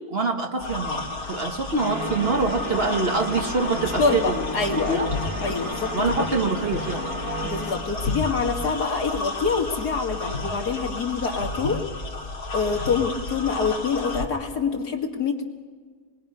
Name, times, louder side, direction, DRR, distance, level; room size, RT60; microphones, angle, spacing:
voice 1, 0.0-4.4 4.7-5.1 5.9-7.1, right 3 dB, 40° right, 4 dB, 1.6 m, -25 dB
sound 1, 0.6-14.3, left 2 dB, 65° left, 2.4 m, -32 dB
sound 2, 1.8-7.7, equal, 70° right, 6.9 m, -33 dB
voice 2, 4.0-5.1 5.4-5.9 7.4-11.8 12.5-15.5, left 5 dB, 80° left, 2 dB, 2.6 m, -26 dB
27.5 x 21.0 x 5.5 m, 1.5 s
omnidirectional pair, 1.7 m